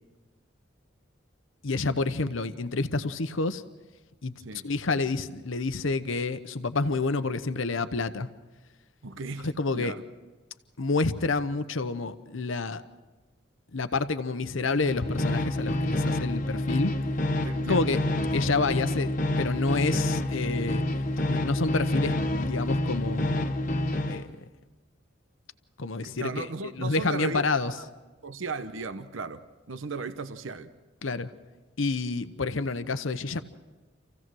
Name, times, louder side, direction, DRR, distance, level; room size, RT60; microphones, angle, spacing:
voice 1, 1.6-3.6 4.2-4.3 4.6-8.3 9.4-10.0 10.8-12.8 13.7-16.9 17.7-18.0 18.3-20.8 21.3-23.5 24.1-24.4 25.8-27.7 31.0-31.3 31.8-33.4, left 3 dB, 75° left, 0.9 m, -29 dB
voice 2, 9.0-9.5 9.7-10.0 17.4-18.1 26.0-27.9 28.2-30.7, right 4 dB, 75° right, 0.9 m, -36 dB
sound 1, 14.7-24.2, left 1 dB, 40° left, 1.0 m, -28 dB
27.5 x 16.0 x 6.2 m
head